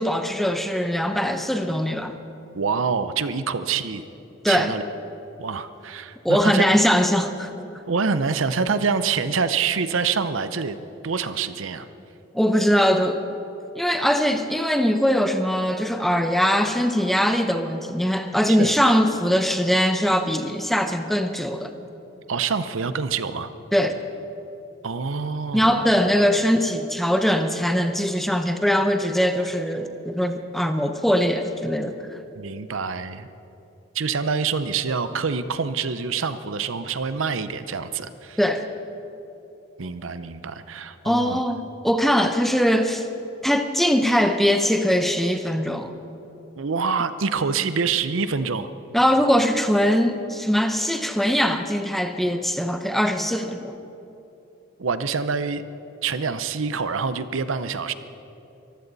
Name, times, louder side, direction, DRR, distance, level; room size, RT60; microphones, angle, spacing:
voice 1, 0.0-2.2 4.4-4.7 6.2-7.5 12.3-13.2 13.7-21.7 23.7-24.0 25.5-32.0 38.4-38.7 41.0-43.1 43.4-45.9 48.9-53.7, equal, ahead, 7 dB, 0.7 m, -21 dB
voice 2, 2.5-4.0 4.5-4.8 5.4-6.8 7.9-10.8 11.0-11.9 18.6-18.7 22.3-23.5 24.8-25.8 32.4-33.3 33.9-38.4 39.8-41.4 46.6-48.7 54.8-55.6 56.0-57.9, right 5 dB, 90° right, 12 dB, 0.7 m, -26 dB
23.0 x 15.0 x 4.1 m, 3.0 s
head